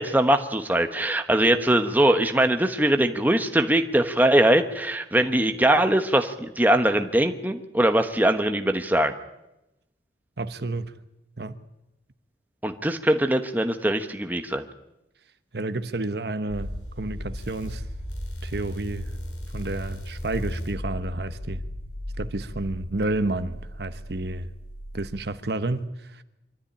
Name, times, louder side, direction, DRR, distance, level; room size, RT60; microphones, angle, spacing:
voice 1, 0.0-9.1 12.6-14.6, right 1 dB, 10° right, 1.1 m, -21 dB
voice 2, 10.4-10.9 11.4-11.6 15.5-17.8 18.4-19.1 19.5-21.6 22.2-24.5 24.9-26.2, right 2 dB, 65° right, 1.0 m, -30 dB
sound 1, 16.5-25.1, equal, 75° left, 7.6 m, -36 dB
24.0 x 13.0 x 10.0 m
head